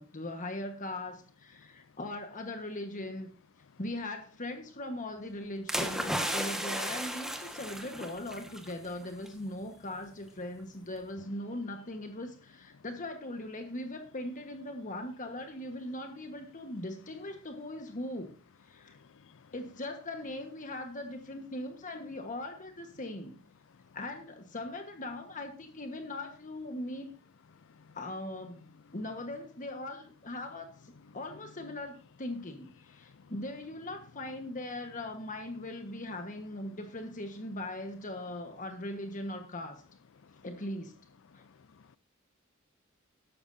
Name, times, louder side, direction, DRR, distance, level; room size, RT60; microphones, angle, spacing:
voice 1, 0.0-3.3 3.8-18.4 18.6-19.0 19.5-23.4 23.9-27.1 27.9-39.8 40.4-40.9 41.3-41.4, left 1 dB, 40° left, 1.4 m, -40 dB
sound 1, 5.7-8.7 9.0-9.3, equal, ahead, 1.5 m, -34 dB
voice 2, 18.9-19.5 27.7-28.0 33.1-33.3 40.2-40.4 41.4-42.0, left 5 dB, 65° left, 0.5 m, -59 dB
13.0 x 12.0 x 2.7 m
head